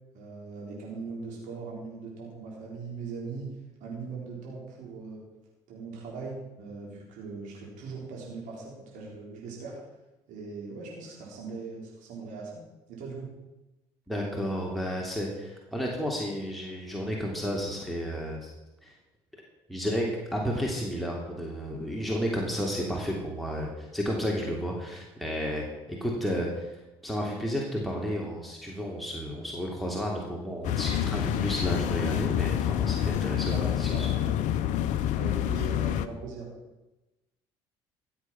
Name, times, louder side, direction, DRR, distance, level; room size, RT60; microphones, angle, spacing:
voice 1, 0.1-3.6 3.8-5.2 5.7-9.8 10.3-12.6 12.9-13.3 33.5-34.3 35.2-36.5, right 4 dB, 70° right, -3 dB, 4.1 m, -40 dB
voice 2, 14.1-18.5 18.8-18.9 19.7-20.1 20.3-33.5 33.8-34.1, equal, ahead, -2 dB, 3.1 m, -32 dB
sound 1, 30.6-36.1, left 11 dB, 65° left, 0.8 m, -27 dB
15.0 x 7.9 x 6.1 m, 1.0 s
hypercardioid pair, 60°, 14 cm